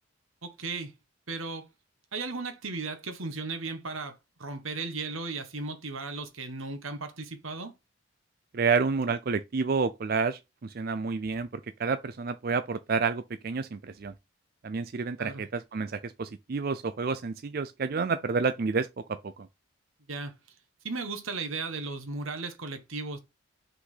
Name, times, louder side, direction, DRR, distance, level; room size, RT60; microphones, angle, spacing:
voice 1, 0.4-0.9 1.3-1.7 2.1-7.7 15.2-15.4 20.1-20.3 20.8-23.2, right 3 dB, 85° right, 1.5 m, -36 dB
voice 2, 8.5-11.5 11.8-14.1 14.6-18.9 19.4-19.5, right 4 dB, 45° right, 0.4 m, -29 dB
5.8 x 4.1 x 5.6 m
head